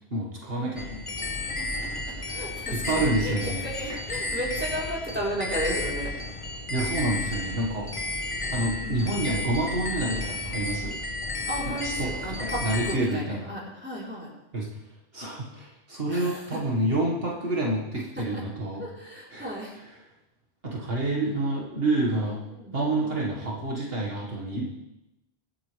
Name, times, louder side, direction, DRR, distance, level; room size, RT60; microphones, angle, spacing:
voice 1, 0.1-1.3 2.7-4.0 6.7-7.9 8.5-11.0 11.7-13.5 14.5-14.7 15.1-18.8 19.3-19.5 20.6-22.4 22.7-24.7, right 2 dB, 65° right, -3 dB, 2.1 m, -28 dB
sound 1, 0.8-13.0, left 2 dB, 30° left, 1.1 m, -32 dB
voice 2, 1.6-6.1 8.8-9.4 11.5-14.3 16.1-16.6 18.2-18.4 18.8-19.8 22.2-23.1, equal, 10° right, -5 dB, 4.0 m, -35 dB
24.0 x 8.7 x 3.4 m, 0.91 s
omnidirectional pair, 1.1 m